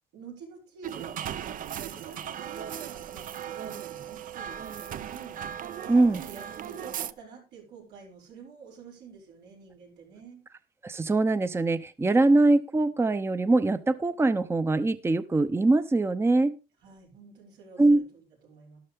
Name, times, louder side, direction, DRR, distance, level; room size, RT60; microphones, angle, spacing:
voice 1, 0.1-5.4 5.7-10.5 16.8-18.8, right 5 dB, 90° right, 0 dB, 6.7 m, -47 dB
sound 1, 0.8-7.1, right 10 dB, 55° right, 0.7 m, -37 dB
voice 2, 5.9-6.2 10.8-16.6 17.8-18.0, right 2 dB, 15° right, 12 dB, 0.7 m, -23 dB
12.5 x 11.5 x 3.5 m, 0.30 s
cardioid pair, 110°, 17 cm